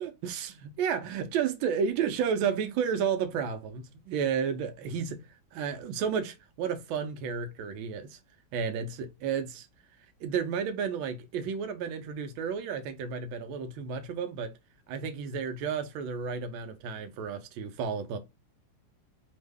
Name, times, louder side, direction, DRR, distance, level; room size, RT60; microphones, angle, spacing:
voice 1, 0.0-5.2 5.5-8.2 8.5-9.7 10.2-14.5 14.9-18.2, right 7 dB, 90° right, 1.4 m, -32 dB
3.4 x 2.1 x 3.4 m
omnidirectional pair, 2.1 m